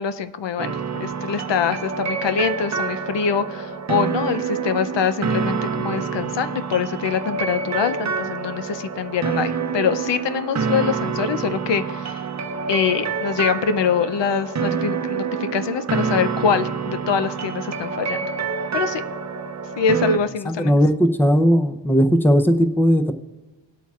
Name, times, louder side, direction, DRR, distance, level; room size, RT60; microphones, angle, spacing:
voice 1, 0.0-12.2 12.7-18.3 18.7-19.0 19.8-20.8, left 7 dB, 75° left, 12 dB, 0.6 m, -24 dB
sound 1, 0.6-20.2, right 5 dB, 40° right, 0.7 m, -27 dB
voice 2, 20.4-23.1, equal, 5° left, 8 dB, 0.6 m, -17 dB
19.5 x 8.3 x 2.4 m, 1.2 s
wide cardioid pair, 110°, 43 cm